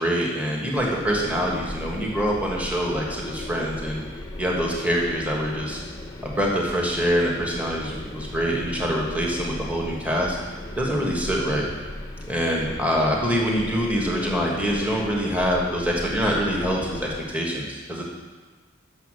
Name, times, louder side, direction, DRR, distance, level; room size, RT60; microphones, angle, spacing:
voice 1, 0.0-4.0 4.4-5.8 6.2-10.4 10.7-11.7 12.3-18.0, equal, 5° right, -2 dB, 1.4 m, -25 dB
sound 1, 0.7-17.2, left 1 dB, 15° left, 0.7 m, -37 dB
8.2 x 6.5 x 6.3 m, 1.3 s
head